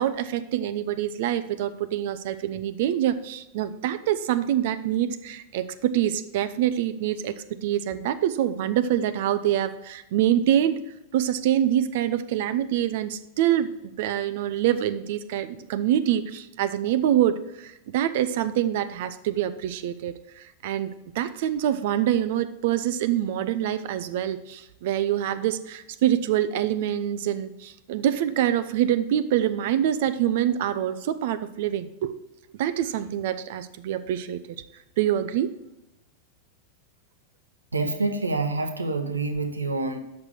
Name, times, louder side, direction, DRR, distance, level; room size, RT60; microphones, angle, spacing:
voice 1, 0.0-7.3 7.6-10.8 11.1-32.2 32.6-34.4 35.0-35.5, right 11 dB, 50° right, 13 dB, 0.5 m, -25 dB
voice 2, 37.7-40.0, right 3 dB, 80° right, 7 dB, 0.9 m, -27 dB
6.4 x 5.9 x 6.2 m, 0.93 s
figure-of-eight pair, 90°, 0 cm